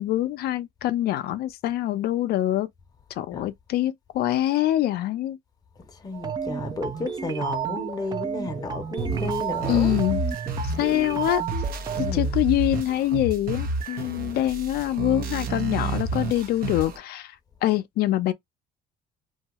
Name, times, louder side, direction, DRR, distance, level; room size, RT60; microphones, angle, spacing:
voice 1, 0.0-2.7 3.2-5.4 9.7-10.2 10.8-11.4 12.0-17.3 17.6-18.3, left 14 dB, 70° left, 0.4 m, -24 dB
voice 2, 5.9-10.0 10.6-10.9 12.0-12.4 13.9-14.1, left 2 dB, 20° left, 0.6 m, -33 dB
sound 1, 6.1-12.1, right 8 dB, 25° right, 0.4 m, -32 dB
sound 2, 9.0-17.0, right 3 dB, 60° right, 0.7 m, -30 dB
2.6 x 2.3 x 2.9 m
cardioid pair, 110°, 17 cm